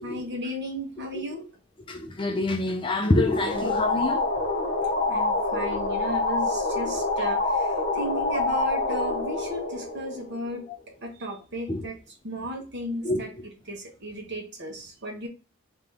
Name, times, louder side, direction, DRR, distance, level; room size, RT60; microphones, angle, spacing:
voice 1, 0.0-1.5 5.1-7.7 7.9-10.6 11.0-11.9 12.2-13.3 13.7-15.3, equal, 50° right, 1.2 m, -35 dB
voice 2, 1.9-4.4 10.7-10.8 11.7-11.9 13.0-13.4, left 2 dB, 25° left, 0.5 m, -27 dB
sound 1, 3.3-10.7, left 2 dB, 40° left, 0.9 m, -26 dB
3.7 x 2.9 x 3.5 m
head